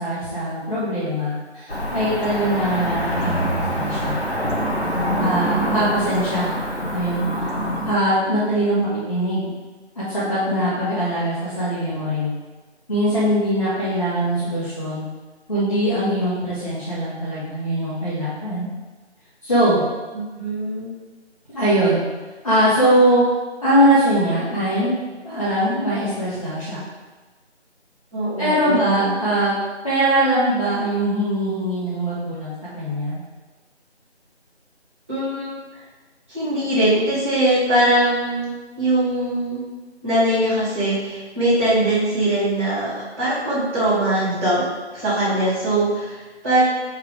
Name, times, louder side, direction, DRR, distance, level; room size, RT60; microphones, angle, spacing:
voice 1, 0.0-4.2 4.8-6.5 6.9-7.5 7.8-8.8 9.1-9.5 9.9-12.3 12.9-15.0 15.5-18.7 19.4-19.8 21.5-22.0 22.4-23.3 23.6-24.9 25.2-26.8 28.4-29.5 29.8-33.2, right 1 dB, 30° left, -12 dB, 1.5 m, -21 dB
Cricket / Motor vehicle (road), 1.7-7.9, equal, 65° left, 2.0 m, -25 dB
voice 2, 8.7-9.0 20.1-20.9 28.1-29.1 35.1-35.8 36.3-39.6 40.0-44.6 44.9-46.6, right 1 dB, 10° right, -18 dB, 2.0 m, -21 dB
6.4 x 4.7 x 3.6 m, 1.2 s
figure-of-eight pair, 170°, 34 cm